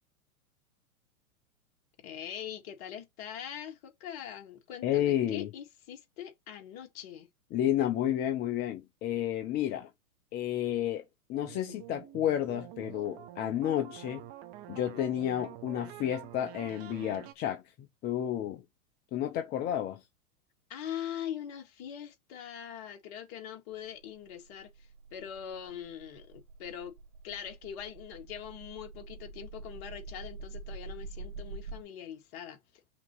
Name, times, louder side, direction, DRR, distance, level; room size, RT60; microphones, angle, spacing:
voice 1, 2.0-7.3 20.7-26.9 27.2-32.6, left 9 dB, 45° left, 2.0 m, -42 dB
voice 2, 4.8-5.5 7.5-9.9 10.3-11.0 11.3-14.3 14.7-17.6 18.0-18.6 19.1-20.0, left 11 dB, 25° left, 0.7 m, -31 dB
sound 1, 11.3-17.3, right 13 dB, 20° right, 0.4 m, -47 dB
sound 2, 23.8-31.8, right 3 dB, 70° right, 1.1 m, -46 dB
5.9 x 3.0 x 5.4 m
hypercardioid pair, 130°, 43 cm